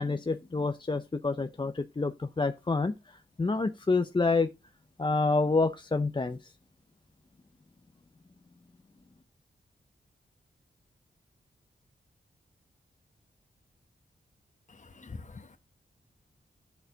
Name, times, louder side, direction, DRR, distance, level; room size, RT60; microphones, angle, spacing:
voice 1, 0.0-2.9 3.4-4.5 5.0-6.4, left 3 dB, 25° left, 0.7 m, -28 dB
voice 2, 14.7-15.6, left 3 dB, 45° left, 1.5 m, -45 dB
10.5 x 6.9 x 4.0 m
wide cardioid pair, 80°, 18 cm